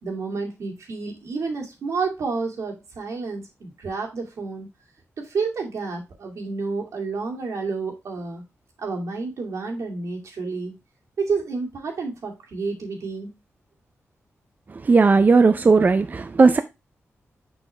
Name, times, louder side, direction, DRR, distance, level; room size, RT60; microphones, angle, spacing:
voice 1, 0.0-4.7 5.2-8.4 8.8-10.7 11.2-13.3, right 4 dB, 80° right, 2.4 m, -30 dB
voice 2, 14.8-16.6, right 4 dB, 35° right, 0.5 m, -16 dB
6.2 x 5.8 x 3.2 m
wide cardioid pair, 120°, 5 cm